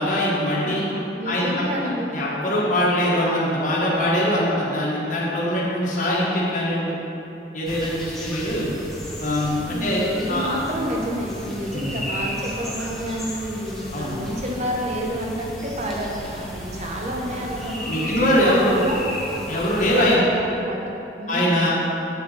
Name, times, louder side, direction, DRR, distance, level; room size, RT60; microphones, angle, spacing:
voice 1, 0.0-0.8 1.2-1.5 1.8-7.0 7.5-8.7 9.2-10.7 11.7-12.0 13.9-14.1 17.9-18.8 19.5-20.2 21.3-21.7, equal, 45° left, -7 dB, 1.4 m, -22 dB
voice 2, 0.6-2.1 9.7-18.1 18.4-19.0 19.9-20.8 21.2-21.7, equal, 35° right, -1 dB, 1.0 m, -29 dB
sound 1, 7.6-20.2, equal, ahead, 1.1 m, -34 dB
8.0 x 7.2 x 4.1 m, 3.0 s
head